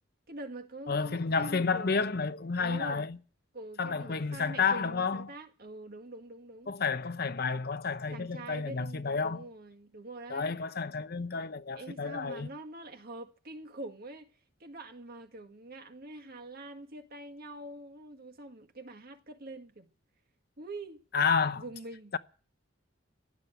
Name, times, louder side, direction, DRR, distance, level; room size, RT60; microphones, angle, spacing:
voice 1, 0.3-2.0 2.6-3.1 3.5-6.7 8.1-10.5 11.8-14.3 14.6-19.9 20.6-21.0 21.6-22.1, right 2 dB, 55° right, 1.8 m, -45 dB
voice 2, 0.9-3.2 3.8-5.3 6.7-9.5 10.3-12.5 21.1-21.6 22.1-22.2, left 5 dB, 55° left, 0.8 m, -30 dB
16.0 x 11.0 x 8.0 m
head